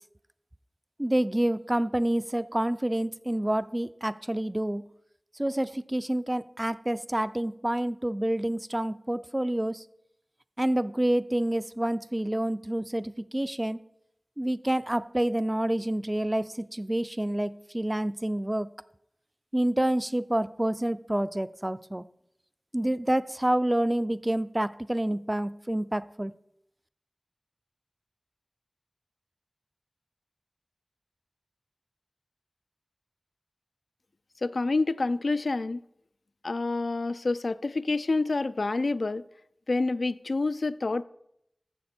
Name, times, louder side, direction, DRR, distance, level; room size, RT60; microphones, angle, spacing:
voice 1, 1.0-4.8 5.4-9.8 10.6-13.8 14.4-18.7 19.5-22.0 22.7-26.3, right 1 dB, 20° right, 0.4 m, -28 dB
voice 2, 34.4-35.8 36.4-39.2 39.7-41.0, left 3 dB, 85° left, 0.3 m, -28 dB
13.5 x 7.0 x 4.3 m
wide cardioid pair, 50°, 0 cm